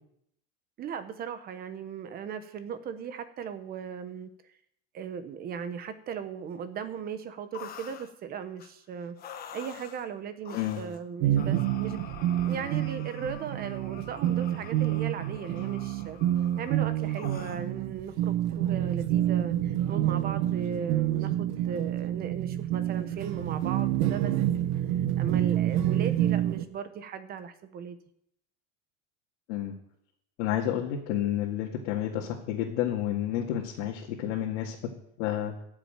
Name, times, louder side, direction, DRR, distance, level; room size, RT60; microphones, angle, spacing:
voice 1, 0.8-4.3 4.9-9.2 9.5-16.2 16.6-24.3 25.2-28.0, right 7 dB, 25° right, 11 dB, 0.9 m, -37 dB
sound 1, 7.5-8.1 8.6-8.7 9.2-10.0 10.4-11.0 11.4-17.7, left 8 dB, 25° left, 1.1 m, -47 dB
voice 2, 10.5-10.8 29.5-29.7 30.4-34.8 35.2-35.5, left 11 dB, 75° left, -2 dB, 2.1 m, -30 dB
sound 2, 11.2-26.7, right 12 dB, 50° right, 1.0 m, -28 dB
12.5 x 7.4 x 8.9 m, 0.72 s
cardioid pair, 170°, 36 cm